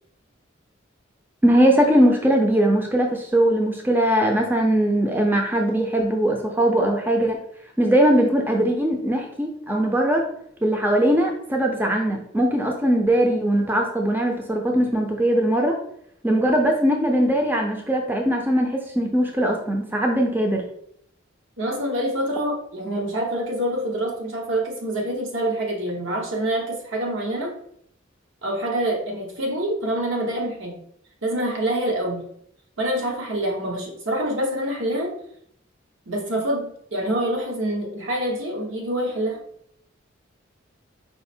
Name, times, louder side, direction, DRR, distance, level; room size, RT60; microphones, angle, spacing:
voice 1, 1.4-7.4 7.8-10.2 10.6-15.8 16.2-20.6, right 1 dB, 10° right, 1 dB, 0.4 m, -20 dB
voice 2, 21.6-27.5 28.4-30.8 31.2-32.2 32.8-35.1 36.1-39.4, right 1 dB, 75° right, 0 dB, 1.0 m, -26 dB
4.8 x 2.0 x 4.3 m, 0.69 s
head